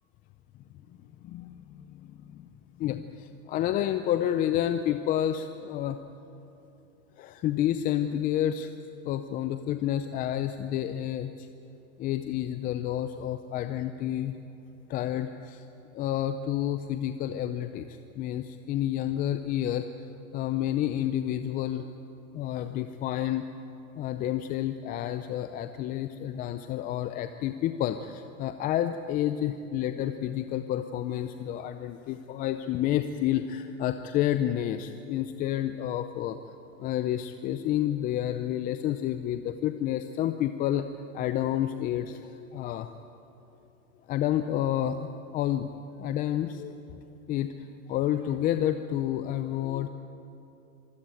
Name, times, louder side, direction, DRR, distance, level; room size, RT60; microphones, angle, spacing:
voice 1, 1.2-2.5 2.8-6.0 7.2-8.7 9.0-11.5 12.0-14.4 14.9-15.7 15.9-19.9 20.3-21.9 22.3-23.5 24.0-36.4 36.8-40.9 41.1-43.0 44.1-45.0 45.3-45.7 46.0-46.8 47.3-47.5 47.9-49.9, left 11 dB, 20° left, 9 dB, 0.5 m, -29 dB
26.0 x 16.0 x 9.1 m, 2.9 s
hypercardioid pair, 130°, 42 cm